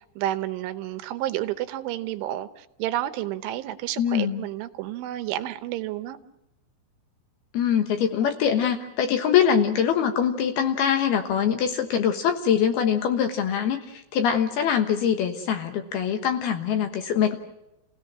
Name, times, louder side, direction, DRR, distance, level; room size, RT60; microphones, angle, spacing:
voice 1, 0.2-6.2, right 13 dB, 80° right, 11 dB, 3.3 m, -30 dB
voice 2, 4.0-4.5 7.5-17.4, left 8 dB, 65° left, 6 dB, 2.8 m, -23 dB
30.0 x 17.0 x 7.5 m, 0.90 s
omnidirectional pair, 5.7 m